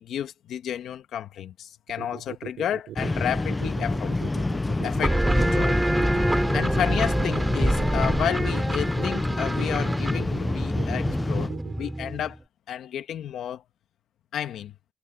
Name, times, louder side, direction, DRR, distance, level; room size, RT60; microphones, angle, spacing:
voice 1, 0.0-4.1 4.8-5.8 6.5-12.4 12.7-13.6 14.3-14.7, left 10 dB, 65° left, 1.8 m, -31 dB
sound 1, 1.9-11.9, right 12 dB, 80° right, 3.2 m, -39 dB
sound 2, 3.0-11.5, left 2 dB, 15° left, 0.4 m, -27 dB
sound 3, 5.0-12.4, right 1 dB, 10° right, 5.1 m, -27 dB
cardioid pair, 150°, 0 cm